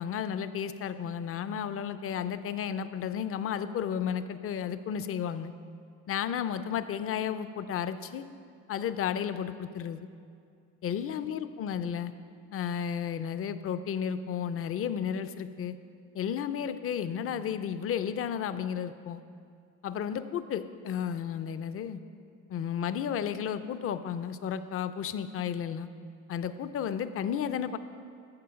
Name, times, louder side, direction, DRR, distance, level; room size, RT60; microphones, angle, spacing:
voice 1, 0.0-5.5 6.1-8.3 8.7-10.1 10.8-12.1 12.5-15.7 16.1-19.2 19.8-22.0 22.5-25.9 26.3-27.8, left 8 dB, 40° left, 12 dB, 0.5 m, -33 dB
12.5 x 7.0 x 5.7 m, 2.3 s
cardioid pair, 140°, 35 cm